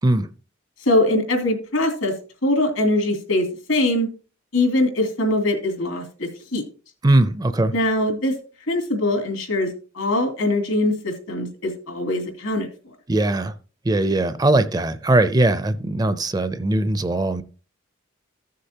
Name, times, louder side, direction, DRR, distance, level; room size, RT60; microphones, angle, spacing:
voice 1, 0.8-2.1 2.4-4.1 4.5-6.6 7.7-8.4 8.7-9.7 9.9-12.7, left 1 dB, 85° left, 2.6 m, -22 dB
voice 2, 7.0-7.7 13.1-13.5 13.9-17.4, right 2 dB, 20° right, 0.4 m, -20 dB
15.0 x 6.5 x 2.8 m
head